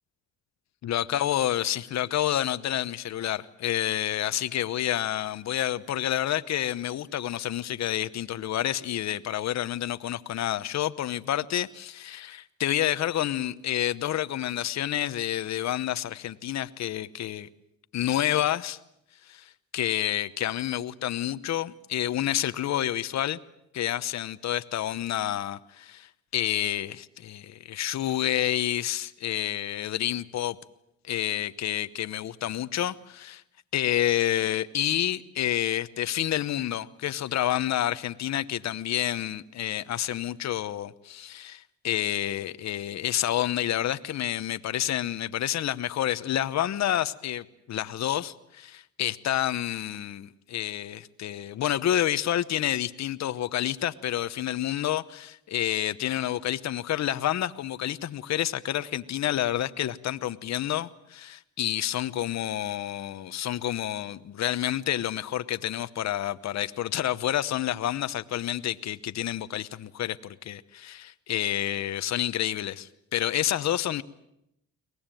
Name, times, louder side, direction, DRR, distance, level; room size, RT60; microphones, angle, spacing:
voice 1, 0.8-17.5 17.9-18.8 19.3-23.4 23.7-30.6 31.1-33.4 33.7-74.0, left 12 dB, 60° left, 1.0 m, -29 dB
23.5 x 19.5 x 9.1 m
cardioid pair, 90°, 30 cm